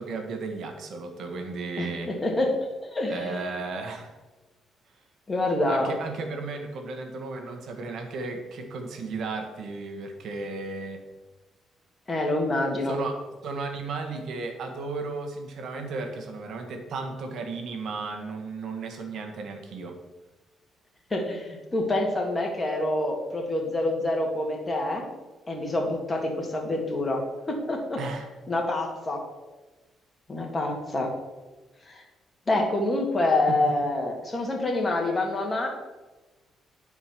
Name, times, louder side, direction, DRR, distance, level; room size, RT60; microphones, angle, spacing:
voice 1, 0.0-2.1 3.1-4.1 5.7-11.0 12.8-20.0 28.0-28.3 33.5-33.6, right 3 dB, 70° right, 5 dB, 1.5 m, -34 dB
voice 2, 1.8-3.5 5.3-5.9 12.1-13.0 21.1-25.1 25.5-28.0 28.5-29.2 30.3-31.1 31.9-32.0 32.5-35.7, left 2 dB, 25° left, 1 dB, 2.1 m, -27 dB
9.2 x 4.8 x 6.0 m, 1.2 s
cardioid pair, 90°, 0 cm